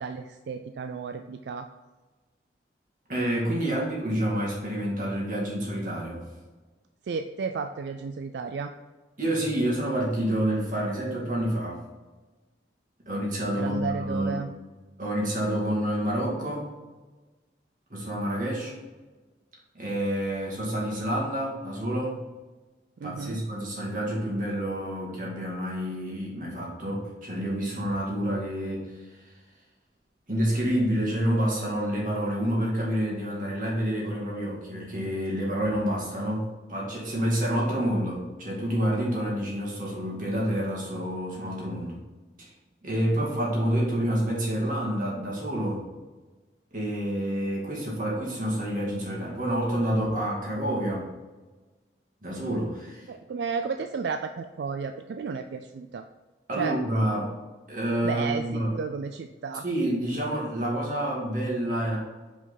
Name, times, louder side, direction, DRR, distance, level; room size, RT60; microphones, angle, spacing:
voice 1, 0.0-1.7 3.7-3.8 7.0-8.7 13.6-14.5 23.0-23.4 43.2-43.4 53.1-56.0 56.6-56.8 58.0-59.6, right 5 dB, 80° right, 7 dB, 0.3 m, -33 dB
voice 2, 3.1-6.2 9.2-11.8 13.1-14.4 15.0-16.7 17.9-18.7 19.7-22.2 23.0-28.9 29.2-29.3 30.3-36.4 36.7-42.0 42.4-42.5 42.8-45.8 46.7-51.1 52.2-53.1 56.5-57.3 57.7-58.7 59.6-62.0, right 1 dB, 50° right, -4 dB, 2.2 m, -28 dB
5.5 x 5.1 x 4.1 m, 1.3 s
head